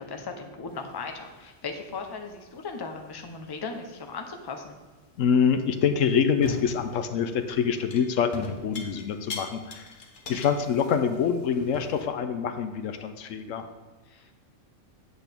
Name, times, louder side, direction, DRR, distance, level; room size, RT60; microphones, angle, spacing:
voice 1, 0.0-4.8 14.1-14.3, left 4 dB, 25° left, 4 dB, 0.6 m, -37 dB
sound 1, 0.7-1.6 1.9-2.3 3.0-3.1 5.9-6.0 6.4-6.9 7.3-12.1, left 3 dB, 45° left, 0.9 m, -41 dB
voice 2, 5.2-9.8 10.3-13.7, left 7 dB, 70° left, 9 dB, 1.0 m, -25 dB
8.1 x 7.9 x 3.5 m, 1.3 s
omnidirectional pair, 1.4 m